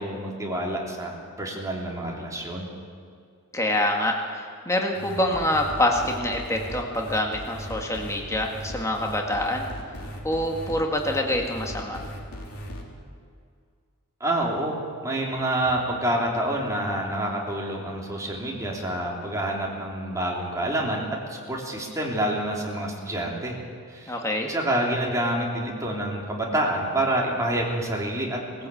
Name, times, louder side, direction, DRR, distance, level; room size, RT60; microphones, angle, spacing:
voice 1, 0.0-2.7 14.2-23.6 23.9-24.2 24.5-28.7, right 1 dB, 15° right, -2 dB, 3.3 m, -27 dB
voice 2, 3.5-9.7 10.2-12.0 24.1-24.5, left 1 dB, 15° left, 1 dB, 1.8 m, -26 dB
sound 1, 4.9-12.8, equal, 85° left, 3.4 m, -38 dB
20.0 x 15.5 x 8.6 m, 2.2 s
head